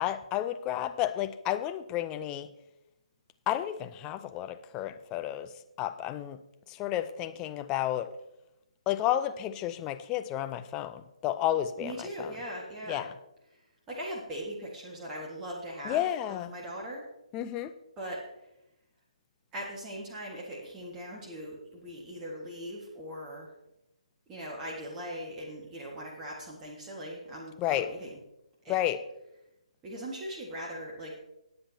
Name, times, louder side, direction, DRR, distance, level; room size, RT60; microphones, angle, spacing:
voice 1, 0.0-2.5 3.5-5.5 5.8-6.4 6.7-8.1 8.9-12.3 12.9-13.1 15.8-16.5 17.3-17.7 27.6-27.9 28.7-29.0, left 12 dB, 15° left, 10 dB, 0.5 m, -31 dB
voice 2, 11.8-13.1 13.9-17.1 18.0-18.3 19.5-23.5 24.3-28.2 28.6-28.8 29.8-31.2, equal, 15° right, -3 dB, 1.7 m, -40 dB
19.5 x 7.7 x 2.8 m, 0.87 s
figure-of-eight pair, 140°, 4 cm